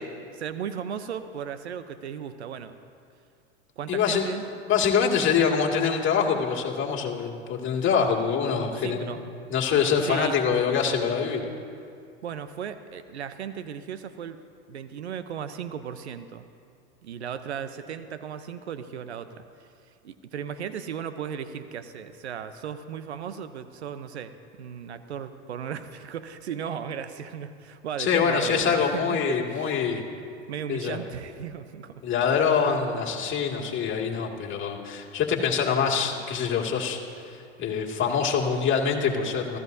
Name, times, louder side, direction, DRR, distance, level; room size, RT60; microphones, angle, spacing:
voice 1, 0.3-2.7 3.8-4.4 8.7-9.3 10.0-10.4 12.2-14.4 14.7-16.5 17.0-19.7 20.0-29.8 30.5-32.0, right 8 dB, 90° right, 11 dB, 0.8 m, -36 dB
voice 2, 3.9-4.3 4.7-9.0 9.5-11.4 28.0-30.0 30.7-31.0 32.0-37.0 37.6-39.6, left 6 dB, 35° left, 0 dB, 2.3 m, -25 dB
30.0 x 15.0 x 2.7 m, 2.4 s
hypercardioid pair, 90°, 32 cm